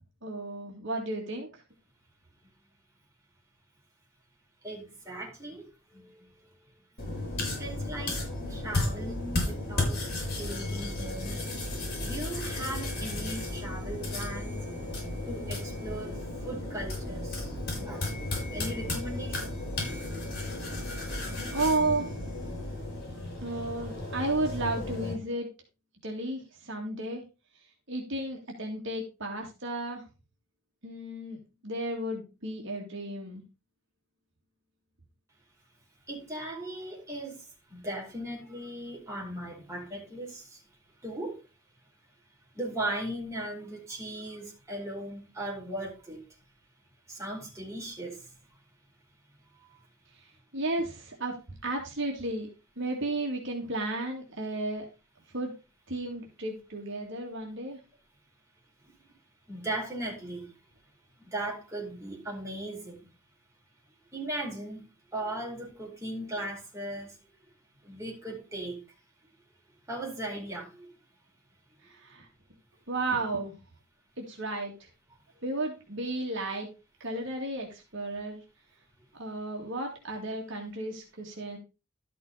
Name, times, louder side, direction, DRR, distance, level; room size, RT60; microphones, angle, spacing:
voice 1, 0.2-1.6 21.2-22.3 23.4-25.5 26.0-27.2 27.9-30.0 30.8-33.4 50.1-50.2 50.5-52.5 52.8-54.9 55.3-55.5 55.9-57.8 71.8-72.3 72.9-73.5 74.2-74.9 75.4-76.7 77.0-78.4 79.1-81.6, right 2 dB, 60° right, 2.3 m, -33 dB
voice 2, 4.6-5.7 5.9-6.3 7.6-8.2 8.5-11.4 12.0-14.6 15.3-19.5 36.1-37.4 37.7-40.6 41.0-41.4 42.5-46.2 47.1-48.2 59.5-60.5 61.2-63.1 64.1-64.8 65.1-67.2 67.8-68.8 69.9-70.9, right 1 dB, 15° right, 4.5 m, -38 dB
sound 1, 7.0-25.1, left 2 dB, 50° left, 5.5 m, -34 dB
12.5 x 6.1 x 4.1 m
head